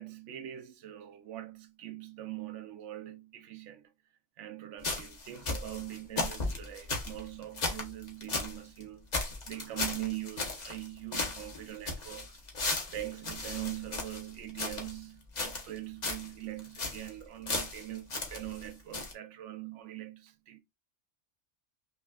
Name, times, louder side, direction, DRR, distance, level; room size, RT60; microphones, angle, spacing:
voice 1, 0.0-3.9 4.4-9.1 9.5-12.4 12.9-20.6, right 14 dB, 75° right, 0.9 m, -42 dB
sound 1, 4.8-8.6 8.8-8.9 9.1-10.9 11.1-15.0 15.3-16.3 16.6-17.1 17.5-18.7 18.9-19.1, left 3 dB, 40° left, 1.0 m, -35 dB
5.5 x 2.4 x 2.3 m
omnidirectional pair, 1.3 m